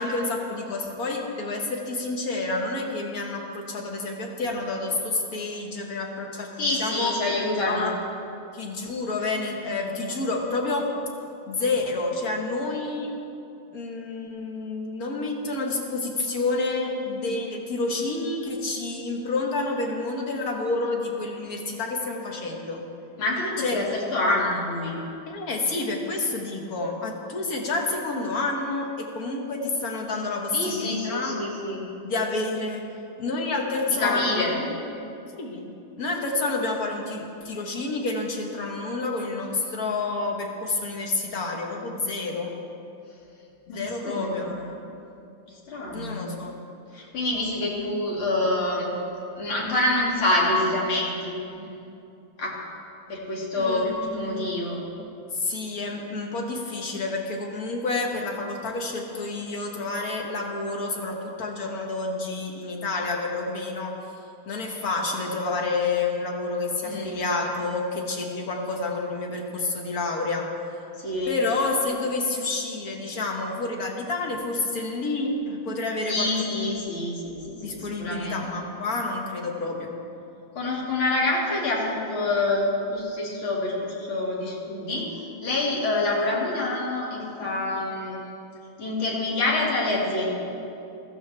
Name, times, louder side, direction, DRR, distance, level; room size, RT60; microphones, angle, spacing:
voice 1, 0.0-7.1 7.7-7.9 8.5-10.9 11.5-13.1 13.7-22.8 23.6-23.8 25.3-31.3 32.0-32.8 33.2-34.8 35.4-35.7 36.0-42.5 43.7-44.5 45.9-46.6 53.6-54.5 55.3-63.9 64.5-70.5 71.3-76.5 77.6-79.9, left 3 dB, 50° left, 1 dB, 1.6 m, -29 dB
voice 2, 6.6-7.9 23.2-24.9 30.5-31.8 34.0-34.5 43.7-44.6 45.7-46.4 46.9-48.9 49.4-51.8 52.4-52.6 53.1-54.8 66.8-67.1 71.0-71.3 76.1-78.4 80.5-85.1 85.4-88.3 88.8-90.4, left 2 dB, 75° left, -4 dB, 3.1 m, -26 dB
15.0 x 14.0 x 3.4 m, 2.7 s
omnidirectional pair, 2.3 m